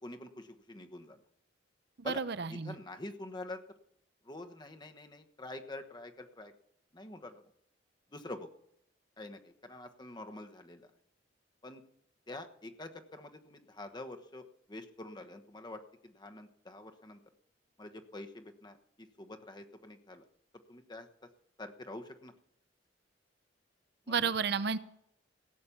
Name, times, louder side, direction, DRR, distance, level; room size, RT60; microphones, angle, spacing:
voice 1, 0.0-1.2 2.0-2.2 2.5-3.6 4.2-6.5 6.9-7.4 8.1-8.5 9.2-10.9 11.6-11.8 12.3-17.2 17.8-20.2 20.7-21.1 21.6-22.3 24.1-24.3, left 2 dB, 25° left, 6 dB, 1.2 m, -46 dB
voice 2, 2.0-2.8 24.1-24.8, right 5 dB, 60° right, 14 dB, 0.7 m, -32 dB
17.0 x 8.6 x 7.1 m, 0.74 s
head